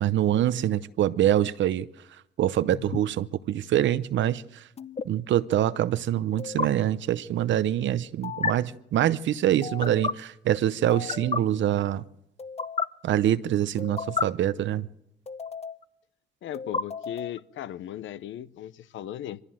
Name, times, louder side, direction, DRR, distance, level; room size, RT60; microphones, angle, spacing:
voice 1, 0.0-1.9 2.4-4.6 5.1-12.0 13.0-14.9, right 11 dB, 70° right, 0.7 m, -25 dB
sound 1, 2.7-3.0 4.8-5.0 6.4-6.7 8.2-8.5 9.6-10.1 10.9-11.4 12.4-12.9 13.8-14.2 15.3-15.8 16.5-17.4, left 5 dB, 30° left, 0.8 m, -31 dB
voice 2, 16.4-19.4, left 11 dB, 75° left, 0.8 m, -37 dB
23.0 x 15.0 x 7.5 m
cardioid pair, 90°, 20 cm